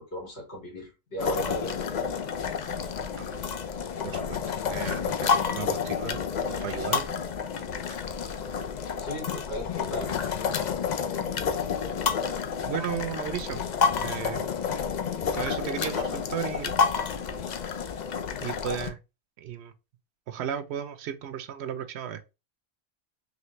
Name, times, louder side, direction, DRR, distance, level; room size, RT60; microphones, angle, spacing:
voice 1, 0.0-1.9 9.0-10.1, right 1 dB, 80° left, 2.3 m, -36 dB
sound 1, 1.2-18.9, left 6 dB, 55° left, 0.6 m, -29 dB
voice 2, 4.0-4.4 4.7-7.1 7.7-8.0 12.7-13.6 14.0-14.8 15.3-16.8 18.4-19.0 19.4-19.7 20.3-22.2, right 9 dB, 85° right, 0.9 m, -35 dB
4.0 x 3.2 x 3.1 m
omnidirectional pair, 1.1 m